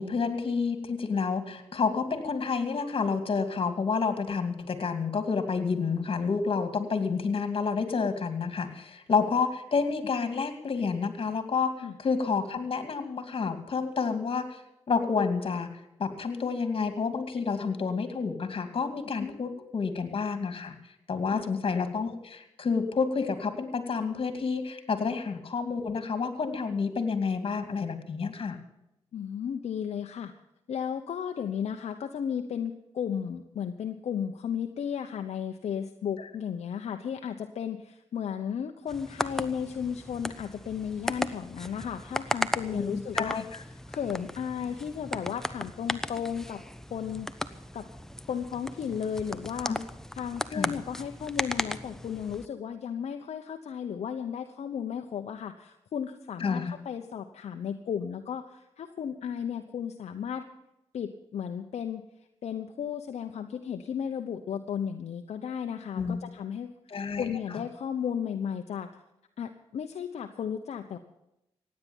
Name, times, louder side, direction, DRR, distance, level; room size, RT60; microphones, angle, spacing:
voice 1, 0.0-11.7 12.0-14.6 14.9-15.7 16.0-20.8 21.1-28.6 42.7-43.4 49.7-49.8 50.5-50.8 56.4-56.7 66.0-66.2 66.9-67.2, left 5 dB, 50° left, 8 dB, 2.5 m, -29 dB
voice 2, 29.1-30.3 30.7-46.6 46.9-47.3 47.7-47.9 48.3-49.8 50.1-60.4 60.9-62.0 62.4-68.9 69.4-71.0, left 8 dB, 75° left, 5 dB, 0.9 m, -34 dB
sound 1, 38.9-52.5, left 1 dB, 5° left, 0.9 m, -36 dB
16.0 x 9.8 x 7.2 m, 0.86 s
cardioid pair, 65°, 11 cm